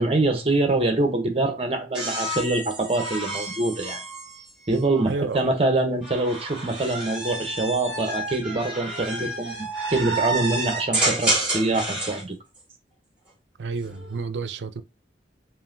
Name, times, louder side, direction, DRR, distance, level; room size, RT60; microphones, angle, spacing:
voice 1, 0.0-4.0 4.7-12.4, right 2 dB, 30° right, 0.8 m, -24 dB
sound 1, 1.9-5.2 6.0-12.2 13.7-14.2, right 2 dB, 5° right, 2.0 m, -29 dB
voice 2, 5.1-5.4 13.6-14.8, right 4 dB, 70° right, 0.4 m, -30 dB
5.5 x 2.6 x 2.6 m
head